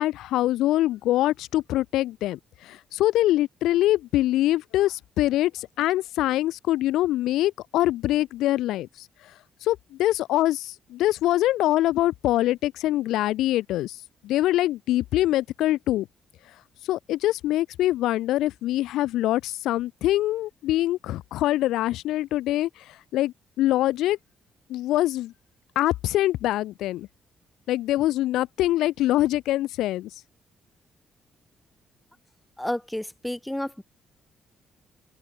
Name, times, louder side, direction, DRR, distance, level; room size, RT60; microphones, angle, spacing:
voice 1, 0.0-9.3 9.6-14.0 14.2-16.1 16.9-24.2 24.7-25.3 25.8-27.1 27.7-30.1, left 15 dB, 90° left, 0.3 m, -24 dB
voice 2, 32.6-33.8, left 1 dB, 5° left, 1.5 m, -31 dB
open air
cardioid pair, 90°, 0 cm